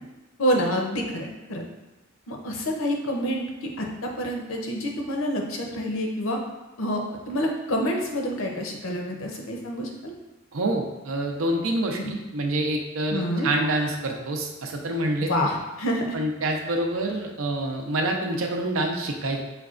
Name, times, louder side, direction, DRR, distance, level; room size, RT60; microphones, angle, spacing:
voice 1, 0.4-1.6 2.3-6.4 6.8-7.0 7.3-10.1 12.0-12.1 13.1-13.5 15.3-16.2, equal, 90° left, 1 dB, 0.7 m, -27 dB
voice 2, 10.5-15.3 16.1-19.4, right 1 dB, 90° right, 2 dB, 0.6 m, -27 dB
5.8 x 2.2 x 2.4 m, 1.1 s
head